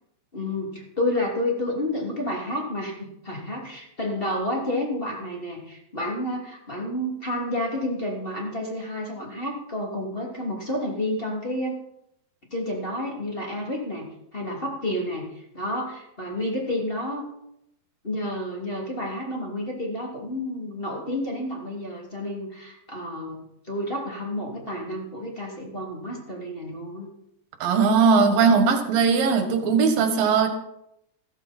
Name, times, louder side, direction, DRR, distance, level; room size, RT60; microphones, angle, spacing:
voice 1, 0.3-11.8 12.5-15.3 15.5-17.3 18.0-27.1 29.4-29.6, left 1 dB, 15° left, -2 dB, 2.7 m, -30 dB
voice 2, 27.6-30.5, right 5 dB, 85° right, 6 dB, 3.4 m, -19 dB
14.5 x 14.5 x 4.4 m, 0.80 s
omnidirectional pair, 3.9 m